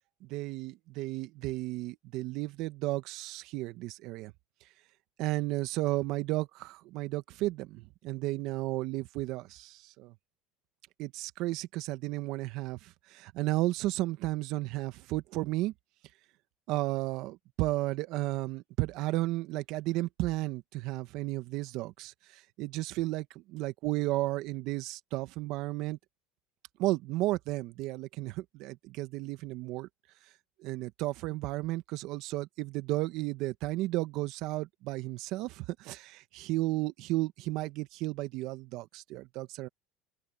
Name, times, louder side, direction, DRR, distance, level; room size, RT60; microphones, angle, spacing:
voice 1, 0.2-4.3 5.2-10.1 11.0-15.7 16.7-26.0 26.8-29.9 30.6-39.7, right 18 dB, 65° right, 1.6 m, -33 dB
open air
supercardioid pair, 95°, 0 cm